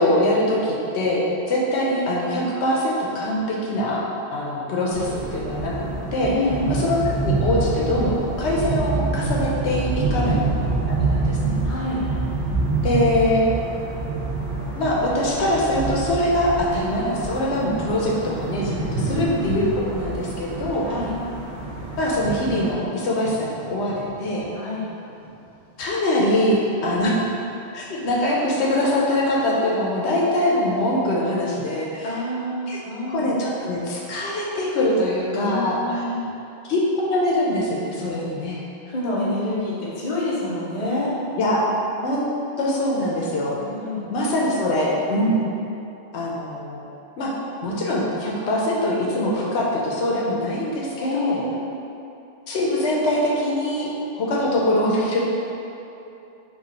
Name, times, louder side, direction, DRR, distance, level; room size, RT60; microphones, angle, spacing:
voice 1, 0.0-4.0 4.3-6.3 6.7-11.5 12.8-13.4 14.8-20.9 22.0-24.5 25.8-27.1 27.7-32.2 32.7-32.8 33.1-36.1 36.6-38.6 41.4-41.6 42.0-42.3 42.6-43.6 44.1-45.4 46.1-46.8 47.2-47.3 47.6-51.4 52.5-53.9 54.2-55.2, left 1 dB, 80° left, -4 dB, 0.9 m, -23 dB
sound 1, 4.9-22.7, right 3 dB, 40° right, 0.6 m, -27 dB
voice 2, 6.3-6.7 9.9-10.4 11.6-12.0 19.1-19.5 20.9-21.1 24.5-24.9 32.0-33.3 35.3-36.2 38.9-41.1 43.6-44.0 51.0-51.5, left 2 dB, 40° left, -7 dB, 0.9 m, -27 dB
Thunder / Rain, 17.0-26.2 26.5-27.4 27.9-28.3 28.6-29.4 30.0-30.1, right 2 dB, 70° right, 1.0 m, -35 dB
4.7 x 2.4 x 4.0 m, 2.9 s
omnidirectional pair, 1.1 m